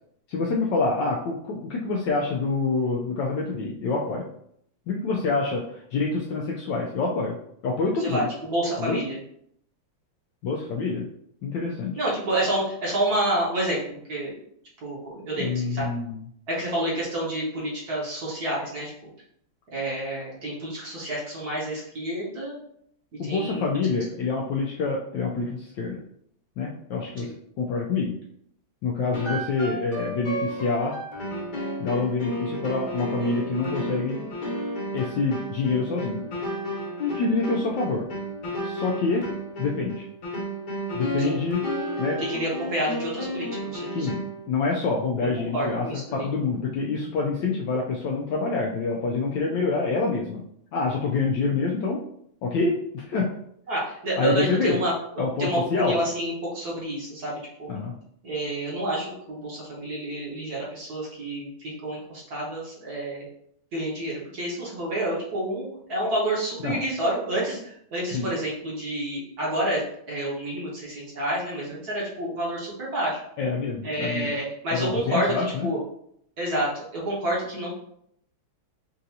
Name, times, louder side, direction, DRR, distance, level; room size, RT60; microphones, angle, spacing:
voice 1, 0.3-4.3 4.9-7.4 7.6-8.3 8.8-9.0 10.4-11.1 11.4-12.0 15.4-16.2 23.2-26.0 26.6-28.1 28.8-30.9 31.8-34.2 34.9-36.2 37.0-38.1 38.6-39.2 39.6-40.1 40.9-41.6 42.0-42.2 43.9-44.2 44.5-45.9 46.1-50.4 50.7-52.0 52.4-53.3 54.2-54.8 55.2-56.0 57.7-57.9 66.6-66.8 68.1-68.3 73.4-74.3 74.7-75.7, left 4 dB, 75° left, -2 dB, 1.1 m, -26 dB
voice 2, 8.0-9.2 12.0-14.4 14.8-15.9 16.5-18.9 19.7-22.5 23.3-23.6 27.2-27.3 41.2-41.4 42.2-44.1 45.5-46.3 53.7-54.9 55.4-57.7 58.2-63.3 63.7-69.8 70.1-73.2 73.8-75.8 76.4-77.7, right 1 dB, 50° right, -5 dB, 1.4 m, -29 dB
sound 1, 29.1-44.4, equal, 55° left, 1.6 m, -32 dB
5.6 x 2.6 x 2.7 m, 0.70 s
omnidirectional pair, 2.4 m